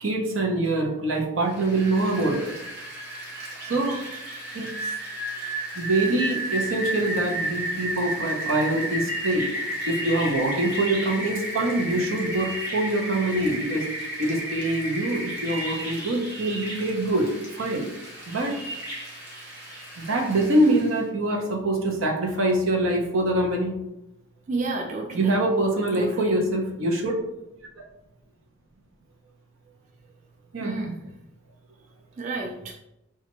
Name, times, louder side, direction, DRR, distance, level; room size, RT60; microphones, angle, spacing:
voice 1, 0.0-2.5 3.6-4.0 4.5-4.9 5.8-13.9 14.2-17.9 18.3-18.6 20.0-23.7 25.1-27.1 30.5-30.8, right 1 dB, 85° right, 1 dB, 0.7 m, -24 dB
Rain, 1.5-21.0, right 1 dB, 55° right, 1.0 m, -33 dB
voice 2, 24.5-25.4 25.9-26.4 30.6-31.0 32.2-32.7, right 3 dB, 35° right, 1 dB, 0.4 m, -31 dB
4.2 x 2.4 x 2.9 m, 0.89 s
head